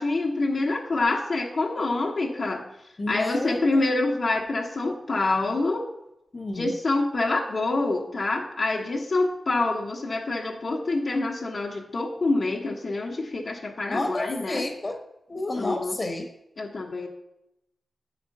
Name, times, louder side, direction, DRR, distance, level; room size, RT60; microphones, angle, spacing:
voice 1, 0.0-2.6 3.1-5.9 6.5-14.6 15.6-15.9 16.6-17.1, left 2 dB, 55° left, -1 dB, 1.1 m, -26 dB
voice 2, 3.0-3.9 6.3-6.7 13.9-15.0 15.3-16.3, left 2 dB, 35° left, 5 dB, 1.2 m, -31 dB
7.8 x 5.1 x 6.5 m, 0.85 s
wide cardioid pair, 80°, 0 cm